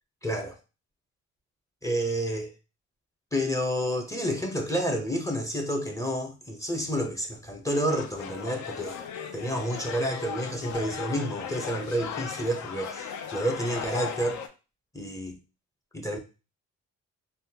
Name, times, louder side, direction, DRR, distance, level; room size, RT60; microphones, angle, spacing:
voice 1, 0.2-0.6 1.8-2.5 3.3-9.0 9.3-14.4 14.9-15.4 15.9-16.2, equal, 10° left, 0.7 m, -29 dB
sound 1, 7.9-14.5, left 7 dB, 70° left, 0.5 m, -37 dB
3.5 x 2.2 x 2.7 m
cardioid pair, 90°, 30 cm